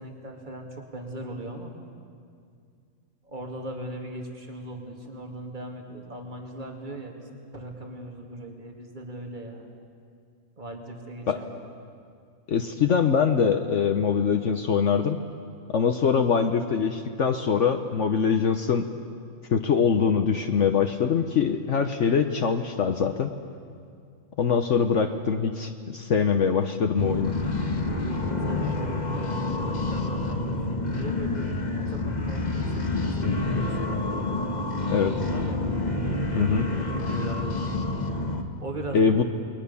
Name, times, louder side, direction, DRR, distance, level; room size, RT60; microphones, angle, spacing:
voice 1, 0.0-1.7 3.2-9.7 10.6-11.5 28.3-35.7 36.7-37.7 38.6-39.2, right 1 dB, 30° right, 2 dB, 2.6 m, -39 dB
voice 2, 12.5-15.2 15.7-18.9 19.5-23.3 24.4-27.3 34.9-35.1 36.3-36.7 38.9-39.2, left 6 dB, 60° left, 6 dB, 1.2 m, -23 dB
sound 1, 27.0-38.4, left 2 dB, 30° left, 1.6 m, -28 dB
29.0 x 21.5 x 7.0 m, 2.3 s
omnidirectional pair, 1.6 m